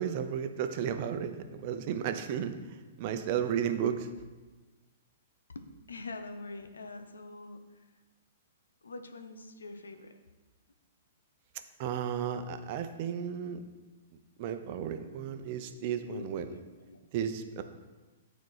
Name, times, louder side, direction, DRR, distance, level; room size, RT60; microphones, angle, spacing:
voice 1, 0.0-2.6 3.0-4.1 11.8-13.7 14.4-16.4 17.1-17.6, right 8 dB, 50° right, 8 dB, 0.7 m, -33 dB
voice 2, 5.5-7.9 8.8-10.2 16.1-17.0, left 3 dB, 85° left, 8 dB, 0.8 m, -45 dB
9.4 x 4.4 x 4.8 m, 1.2 s
hypercardioid pair, 120°, 0 cm